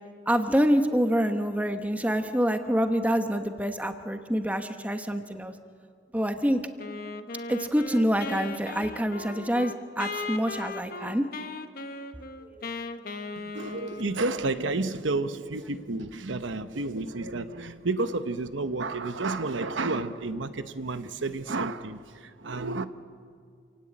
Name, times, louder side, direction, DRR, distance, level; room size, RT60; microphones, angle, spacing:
voice 1, 0.3-5.5 6.1-6.6 7.5-11.3 12.6-12.7, equal, 10° right, 7 dB, 1.2 m, -26 dB
Wind instrument woodwind instrument, 6.8-14.5, left 3 dB, 50° left, 1.1 m, -38 dB
voice 2, 13.4-22.9, right 3 dB, 80° right, 10 dB, 1.0 m, -31 dB
28.0 x 18.0 x 8.7 m, 2.3 s
head